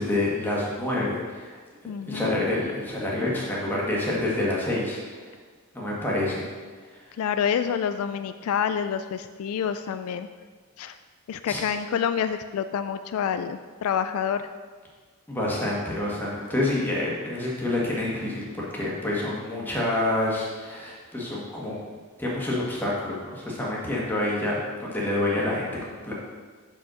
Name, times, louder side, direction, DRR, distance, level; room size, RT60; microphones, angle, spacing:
voice 1, 0.0-1.6 2.1-5.3 5.7-6.5 11.5-11.6 15.3-18.4 18.7-21.8 22.2-26.1, left 1 dB, 10° left, -5 dB, 1.5 m, -27 dB
voice 2, 1.9-2.3 7.2-10.3 10.8-11.0 11.3-14.5, left 8 dB, 70° left, 10 dB, 0.3 m, -27 dB
5.6 x 5.2 x 6.1 m, 1.5 s
head